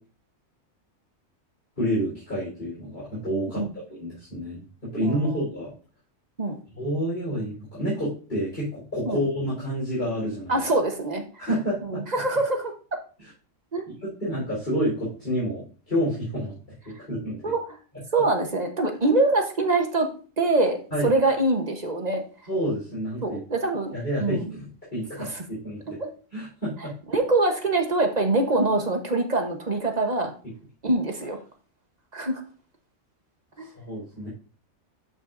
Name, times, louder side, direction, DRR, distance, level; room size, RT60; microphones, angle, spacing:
voice 1, 1.8-3.6 3.9-5.7 6.7-10.6 11.4-12.0 14.2-16.5 16.8-17.4 20.9-21.2 22.5-23.4 23.9-26.0 26.3-26.9 33.8-34.3, equal, 45° left, -8 dB, 4.3 m, -29 dB
voice 2, 5.0-5.4 6.4-6.6 9.1-9.2 10.5-11.5 11.9-12.7 13.7-13.8 17.4-17.6 18.1-20.1 20.4-22.2 23.2-23.9 24.2-24.6 25.2-25.4 26.0-26.1 27.1-30.3 30.8-31.4 32.1-32.4 33.6-33.7, right 2 dB, 35° right, 4 dB, 1.1 m, -24 dB
12.5 x 5.6 x 2.6 m, 0.37 s
omnidirectional pair, 1.3 m